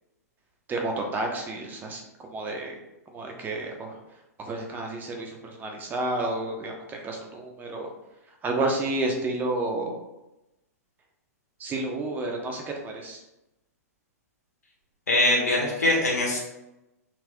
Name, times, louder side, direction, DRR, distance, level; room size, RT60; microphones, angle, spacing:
voice 1, 0.7-2.0 2.3-2.7 3.1-4.0 4.4-7.9 8.4-9.9 11.6-13.2, right 2 dB, 20° right, 2 dB, 0.9 m, -30 dB
voice 2, 15.1-16.4, left 1 dB, 80° left, -3 dB, 1.5 m, -22 dB
5.9 x 3.5 x 2.3 m, 0.95 s
figure-of-eight pair, 110°, 9 cm